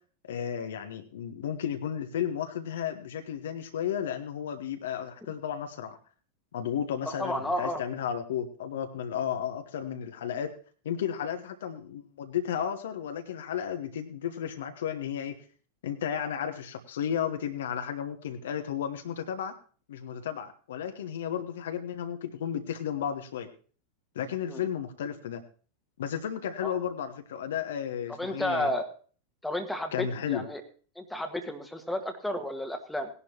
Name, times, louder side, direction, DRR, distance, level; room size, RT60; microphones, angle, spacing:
voice 1, 0.3-6.0 6.5-10.5 10.8-15.3 15.8-19.5 19.9-23.5 24.1-25.4 26.0-28.7 29.9-30.4, left 9 dB, 60° left, 7 dB, 1.2 m, -33 dB
voice 2, 7.1-7.8 24.5-24.6 26.6-26.7 28.2-28.8 29.4-30.6 30.9-33.1, left 1 dB, 5° left, 5 dB, 1.7 m, -32 dB
18.5 x 11.0 x 3.0 m, 0.41 s
figure-of-eight pair, 90°, 0 cm